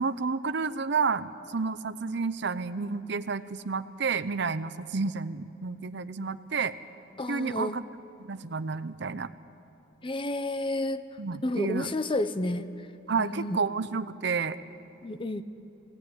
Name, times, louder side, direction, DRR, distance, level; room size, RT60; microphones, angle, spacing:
voice 1, 0.0-6.7 7.3-7.8 8.2-9.3 11.2-11.9 13.1-14.6, right 4 dB, 65° right, 13 dB, 0.7 m, -30 dB
voice 2, 7.2-7.8 10.0-11.1 11.4-12.7 13.2-13.6 15.0-15.4, left 1 dB, 25° left, 11 dB, 0.7 m, -30 dB
19.5 x 16.5 x 9.9 m, 2.7 s
head